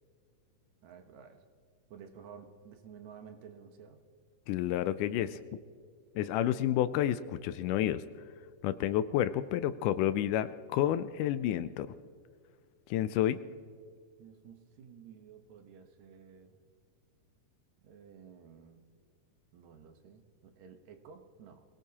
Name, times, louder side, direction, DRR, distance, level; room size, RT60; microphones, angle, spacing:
voice 1, 0.8-1.4 1.9-4.0 14.2-16.6 17.8-18.8 19.5-21.6, right 7 dB, 65° right, 6 dB, 2.2 m, -53 dB
voice 2, 4.5-5.4 6.2-8.0 8.6-11.9 12.9-13.4, left 12 dB, 85° left, 13 dB, 2.1 m, -30 dB
23.5 x 18.0 x 2.9 m, 2.1 s
omnidirectional pair, 3.7 m